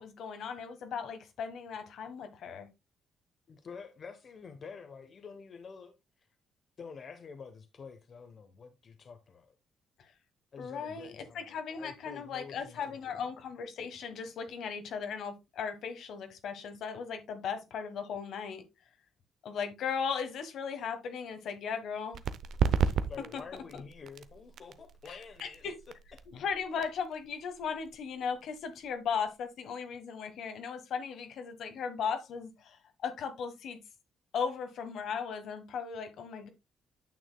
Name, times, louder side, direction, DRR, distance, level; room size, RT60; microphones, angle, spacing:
voice 1, 0.0-2.7 10.6-18.6 19.4-22.2 23.3-23.4 23.7-23.8 25.1-25.7 26.3-33.8 34.3-36.5, left 6 dB, 70° left, 1.3 m, -37 dB
voice 2, 3.5-5.9 6.8-9.6 10.5-13.2 23.1-25.7 26.1-26.2, left 5 dB, 50° left, 1.0 m, -48 dB
sound 1, 22.1-29.5, right 7 dB, 70° right, 0.6 m, -35 dB
9.4 x 6.3 x 2.2 m
cardioid pair, 90°, 0 cm